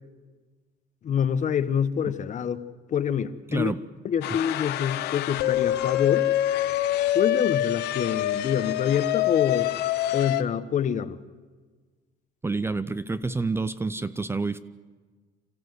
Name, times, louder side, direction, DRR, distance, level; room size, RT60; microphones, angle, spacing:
voice 1, 1.0-2.6 2.9-3.7 4.0-6.3 7.1-9.7 10.1-11.2, left 8 dB, 45° left, 12 dB, 1.1 m, -26 dB
voice 2, 3.5-3.8 12.4-14.6, right 3 dB, 15° right, 14 dB, 0.6 m, -28 dB
sound 1, 4.2-10.4, left 13 dB, 80° left, 0.9 m, -26 dB
28.0 x 14.5 x 7.9 m, 1.4 s
cardioid pair, 110°, 17 cm